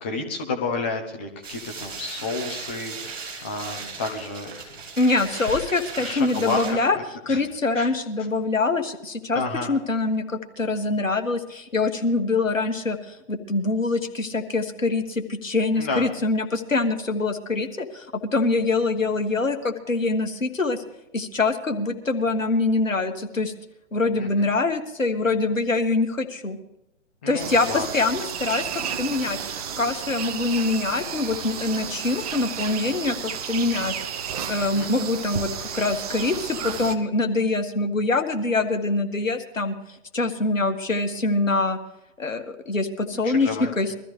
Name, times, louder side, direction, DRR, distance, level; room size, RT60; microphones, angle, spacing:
voice 1, 0.0-4.5 6.0-6.8 7.3-7.4 7.7-7.9 9.3-9.7 15.8-16.1 24.1-24.5 27.2-27.9 34.7-34.9 43.1-43.7, left 3 dB, 10° left, 4 dB, 0.4 m, -30 dB
sound 1, 1.4-6.7, right 5 dB, 50° right, 5.5 m, -37 dB
voice 2, 5.0-7.0 7.3-9.4 9.7-20.8 21.1-23.5 23.9-26.6 27.3-33.2 33.5-33.9 34.5-39.8 40.1-41.8 42.2-43.5 43.8-43.9, left 3 dB, 80° left, 6 dB, 1.8 m, -24 dB
sound 2, 27.4-37.0, right 8 dB, 30° right, 0.9 m, -32 dB
22.5 x 14.0 x 3.3 m, 0.89 s
figure-of-eight pair, 130°, 38 cm